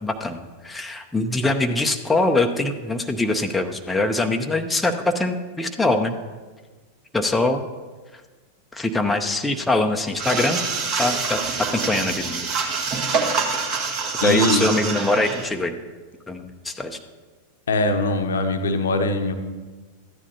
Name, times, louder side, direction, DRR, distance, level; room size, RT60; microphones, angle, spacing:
voice 1, 0.0-6.2 7.1-7.6 8.7-10.6 11.0-11.4 11.7-12.5 14.2-15.8 16.3-17.0, left 2 dB, 10° left, 4 dB, 0.7 m, -23 dB
sound 1, 10.2-15.5, right 4 dB, 40° right, 1.4 m, -25 dB
voice 2, 14.2-14.7 17.7-19.3, left 2 dB, 65° left, 6 dB, 0.9 m, -22 dB
14.0 x 9.7 x 2.8 m, 1.3 s
figure-of-eight pair, 90°, 0 cm